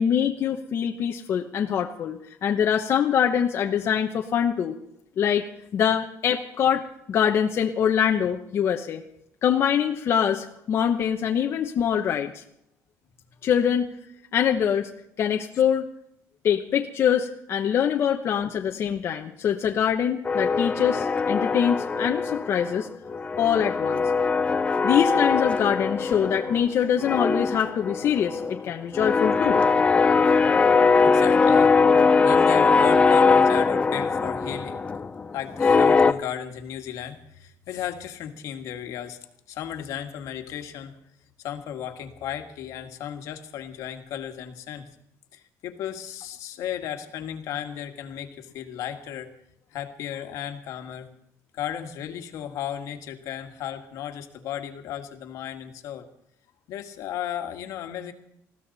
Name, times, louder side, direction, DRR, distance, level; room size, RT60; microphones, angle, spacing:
voice 1, 0.0-4.8 5.2-5.4 5.7-6.8 7.1-9.0 9.4-12.4 13.4-13.9 14.3-14.9 15.2-15.9 16.4-22.9 23.4-24.0 24.8-29.6, left 8 dB, 45° left, 2 dB, 1.0 m, -24 dB
sound 1, 20.3-22.8 23.1-26.7 27.0-36.1, left 4 dB, 20° left, 0.6 m, -21 dB
voice 2, 31.0-34.8 35.3-39.2 39.5-40.9 41.4-44.8 45.3-49.3 49.7-51.1 51.5-56.1 56.7-58.1, left 10 dB, 70° left, 5 dB, 1.8 m, -35 dB
20.5 x 15.0 x 4.2 m, 0.76 s
cardioid pair, 155°, 6 cm